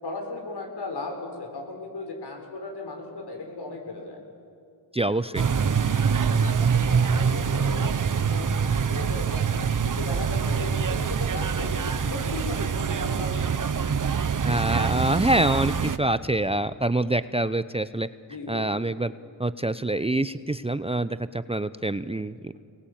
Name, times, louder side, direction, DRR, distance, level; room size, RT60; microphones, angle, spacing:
voice 1, 0.0-4.2 6.2-7.9 8.2-9.5 9.8-13.5 18.3-18.7, left 3 dB, 65° left, 3 dB, 6.8 m, -37 dB
voice 2, 4.9-5.4 14.4-18.1 18.5-19.1 19.4-22.5, right 2 dB, 15° right, 13 dB, 0.8 m, -25 dB
sound 1, 5.3-16.0, right 6 dB, 45° right, 1.2 m, -25 dB
27.0 x 20.0 x 8.9 m, 2.2 s
cardioid pair, 55°, 44 cm